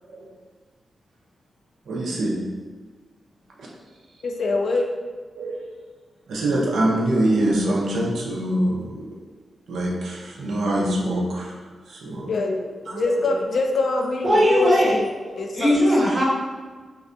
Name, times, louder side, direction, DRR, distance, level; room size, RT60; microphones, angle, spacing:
voice 1, 0.0-0.4 1.9-2.7 3.6-3.7 5.3-5.8 6.3-9.2 9.7-12.3 12.9-13.4 13.9-14.1, right 1 dB, 85° right, -3 dB, 0.5 m, -25 dB
voice 2, 4.2-4.9 12.3-15.1 15.4-15.7, left 3 dB, 65° left, 3 dB, 0.3 m, -24 dB
voice 3, 14.2-15.0 15.5-16.2, equal, 40° right, -5 dB, 0.8 m, -18 dB
2.6 x 2.2 x 2.4 m, 1.4 s
wide cardioid pair, 95°, 0 cm